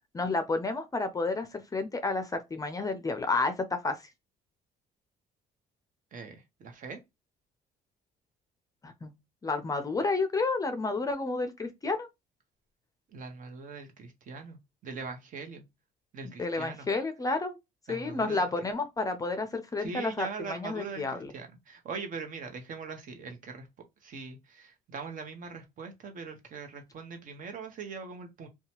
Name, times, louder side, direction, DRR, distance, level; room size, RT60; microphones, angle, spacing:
voice 1, 0.1-4.0 8.8-9.1 9.4-12.1 16.4-17.6 17.9-21.3, left 3 dB, 20° left, 0.5 m, -31 dB
voice 2, 6.1-7.0 13.1-14.6 14.8-15.6 16.1-16.9 17.9-18.5 19.8-23.7 24.0-28.5, right 4 dB, 50° right, 0.9 m, -41 dB
2.8 x 2.3 x 2.9 m
cardioid pair, 110°, 17 cm